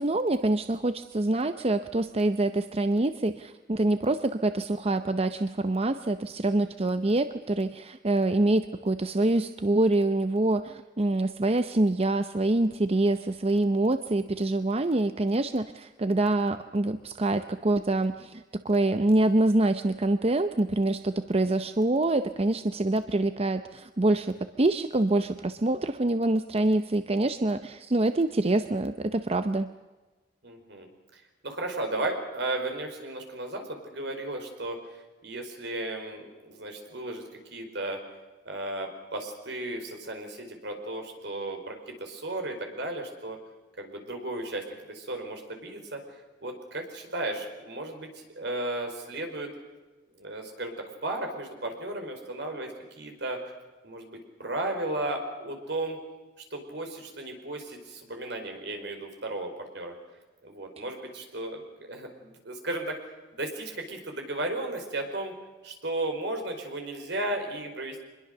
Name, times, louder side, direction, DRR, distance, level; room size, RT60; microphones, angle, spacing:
voice 1, 0.0-29.7, right 2 dB, 35° right, 10 dB, 0.7 m, -25 dB
voice 2, 30.4-30.9 31.1-34.8 35.2-37.2 37.5-38.0 38.4-43.4 43.8-46.0 46.4-49.5 50.2-50.7 51.0-52.7 52.9-53.4 53.8-56.0 56.5-59.9 60.4-63.0 63.3-65.3 65.6-68.0, right 2 dB, 65° right, 4 dB, 4.8 m, -34 dB
25.0 x 21.5 x 6.7 m, 1.2 s
head